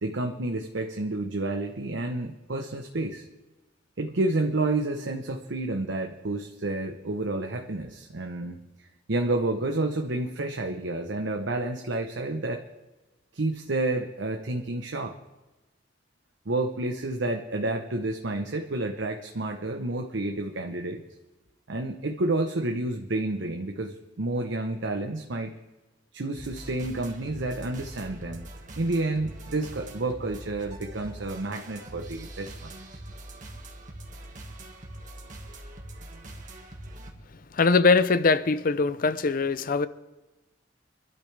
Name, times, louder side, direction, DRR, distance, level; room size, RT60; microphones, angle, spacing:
voice 1, 0.0-3.3 4.0-12.6 13.3-15.1 16.5-21.0 21.7-25.6 26.1-28.5 28.8-33.0, right 2 dB, 80° right, 0.9 m, -30 dB
sound 1, 26.4-37.1, right 1 dB, 45° right, 1.8 m, -43 dB
voice 2, 37.5-39.9, left 4 dB, 50° left, 0.5 m, -22 dB
24.5 x 12.0 x 3.4 m
head